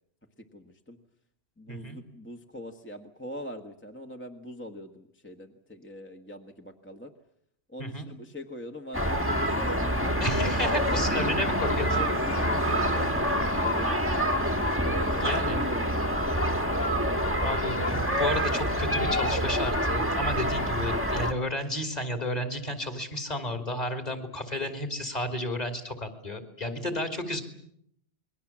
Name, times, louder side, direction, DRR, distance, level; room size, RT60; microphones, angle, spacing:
voice 1, 0.5-1.0 1.6-7.1 7.7-10.7 11.1-11.3 11.9-14.0 14.8-16.8 26.7-26.8, left 1 dB, 10° left, 3 dB, 1.4 m, -41 dB
voice 2, 1.7-2.0 7.8-8.1 10.2-12.0 15.2-15.6 17.2-27.4, left 1 dB, 35° left, 6 dB, 3.3 m, -32 dB
sound 1, 8.9-21.3, equal, 10° right, 1.5 m, -26 dB
29.0 x 22.0 x 7.4 m, 0.71 s
omnidirectional pair, 1.2 m